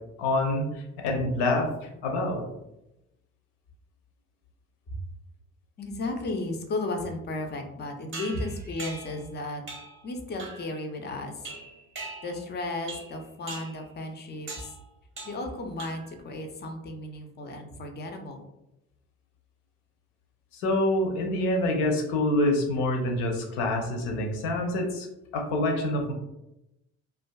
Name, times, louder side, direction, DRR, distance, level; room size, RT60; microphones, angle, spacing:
voice 1, 0.2-2.4 20.5-25.1 25.3-26.1, left 1 dB, 65° left, 2 dB, 0.7 m, -26 dB
voice 2, 5.8-9.6 10.0-11.5 12.2-14.7 15.2-18.4, left 2 dB, 25° left, 4 dB, 0.4 m, -34 dB
sound 1, 8.1-9.3 9.7-10.0 10.4-10.7 11.5-12.5 12.9-13.2 13.5-13.8 14.5-14.8 15.2-15.5 15.8-16.2, right 3 dB, 30° right, 0.6 m, -41 dB
2.4 x 2.3 x 2.2 m, 0.90 s
hypercardioid pair, 55°, 43 cm